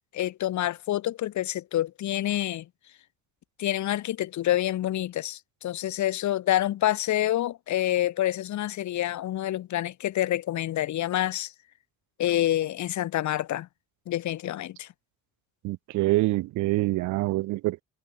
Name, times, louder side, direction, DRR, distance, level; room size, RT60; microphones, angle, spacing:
voice 1, 0.1-2.7 3.6-11.5 12.2-13.7 14.1-14.9, left 13 dB, 70° left, 1.1 m, -27 dB
voice 2, 15.6-17.8, right 19 dB, 80° right, 0.5 m, -25 dB
cardioid pair, 90°, 30 cm